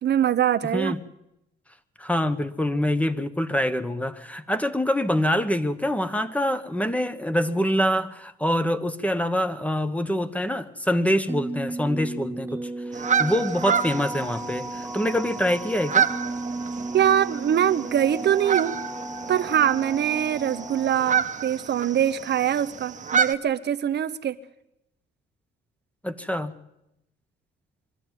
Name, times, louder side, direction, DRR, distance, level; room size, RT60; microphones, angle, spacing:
voice 1, 0.0-1.0 16.9-18.7 19.3-24.4, right 10 dB, 60° right, 12 dB, 0.9 m, -23 dB
voice 2, 2.0-16.1 26.0-26.5, equal, 5° left, 11 dB, 1.3 m, -25 dB
sound 1, 11.3-20.9, right 2 dB, 10° right, 0.7 m, -35 dB
sound 2, 12.9-23.3, right 7 dB, 40° right, 1.2 m, -29 dB
22.5 x 13.5 x 9.2 m, 0.85 s
cardioid pair, 90°, 20 cm